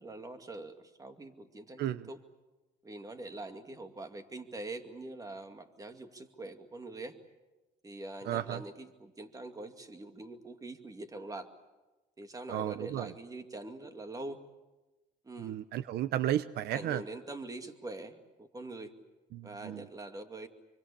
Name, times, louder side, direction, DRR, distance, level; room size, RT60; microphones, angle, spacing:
voice 1, 0.0-2.2 2.8-7.2 7.8-11.5 12.2-14.4 15.2-15.6 16.7-18.9 19.4-20.5, right 2 dB, 20° right, 7 dB, 2.3 m, -44 dB
voice 2, 1.8-2.1 8.2-8.6 12.5-13.1 15.4-17.0 19.3-19.9, right 12 dB, 75° right, 15 dB, 0.8 m, -33 dB
25.5 x 24.5 x 8.5 m, 1.1 s
cardioid pair, 110°, 17 cm